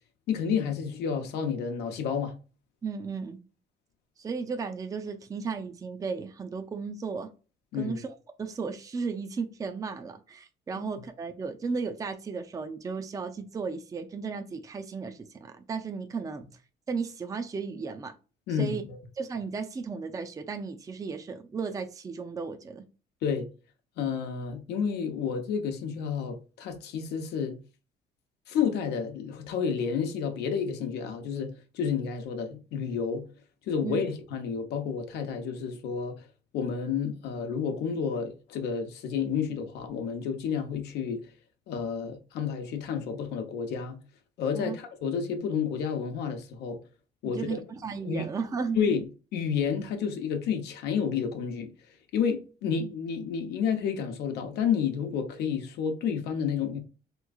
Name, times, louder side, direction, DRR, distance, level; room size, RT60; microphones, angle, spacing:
voice 1, 0.3-2.3 7.7-8.0 10.8-10.9 18.5-19.0 23.2-23.5 24.0-27.6 28.5-33.3 33.7-36.2 36.5-41.3 41.7-44.0 44.4-46.8 47.2-47.4 48.1-48.2 48.8-49.1 49.3-51.7 52.1-56.8, left 6 dB, 80° left, 0.8 m, -30 dB
voice 2, 2.8-3.4 4.2-7.3 7.8-16.4 16.9-18.1 18.5-18.8 19.2-22.8 33.8-34.0 44.5-44.7 47.3-48.8, right 5 dB, 20° right, 0.4 m, -35 dB
3.5 x 3.0 x 2.3 m
cardioid pair, 110°, 17 cm